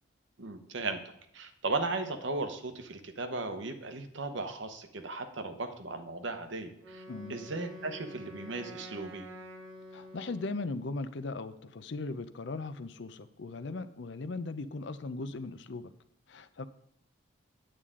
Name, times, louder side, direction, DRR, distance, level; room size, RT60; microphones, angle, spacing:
voice 1, 0.4-1.0 1.3-7.0 7.3-9.3, right 3 dB, 65° right, 7 dB, 1.0 m, -36 dB
Wind instrument woodwind instrument, 6.8-10.8, equal, 85° right, 1.4 m, -48 dB
voice 2, 7.1-7.4 9.9-15.9 16.3-16.7, left 3 dB, 60° left, 12 dB, 0.5 m, -38 dB
8.9 x 8.5 x 3.7 m, 0.73 s
head